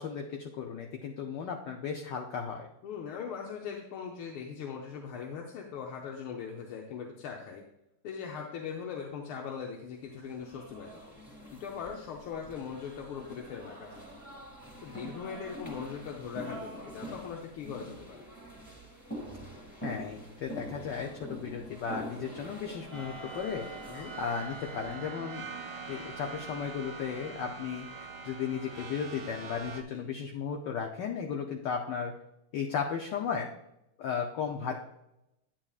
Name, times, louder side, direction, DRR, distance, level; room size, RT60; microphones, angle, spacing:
voice 1, 0.0-2.7 19.8-23.7 23.9-25.5 25.9-32.1 32.5-33.5 34.0-34.7, left 6 dB, 70° left, 2 dB, 1.2 m, -35 dB
voice 2, 2.8-7.6 8.0-11.2 11.5-14.0 14.8-18.3 23.9-24.1 29.9-30.1, left 6 dB, 85° left, 0 dB, 1.7 m, -40 dB
sound 1, 10.1-24.8, equal, 10° left, 1.9 m, -45 dB
sound 2, 22.9-29.8, right 4 dB, 50° right, 1.1 m, -43 dB
9.8 x 8.9 x 2.4 m, 0.86 s
omnidirectional pair, 2.3 m